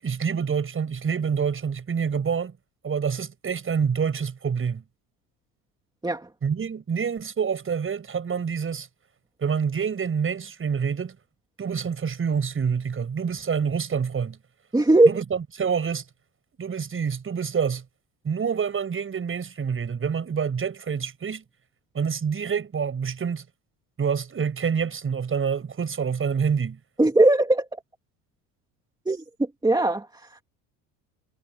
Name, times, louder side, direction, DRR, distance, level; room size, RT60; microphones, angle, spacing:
voice 1, 0.0-2.5 2.8-4.8 6.4-8.9 9.4-11.2 11.6-14.4 15.1-16.1 16.6-17.8 18.2-21.4 21.9-23.4 24.0-26.8, right 6 dB, 30° right, 7.2 m, -27 dB
voice 2, 14.7-15.1 27.0-27.8 29.1-30.4, right 2 dB, 10° right, 2.5 m, -20 dB
supercardioid pair, 100°, 39 cm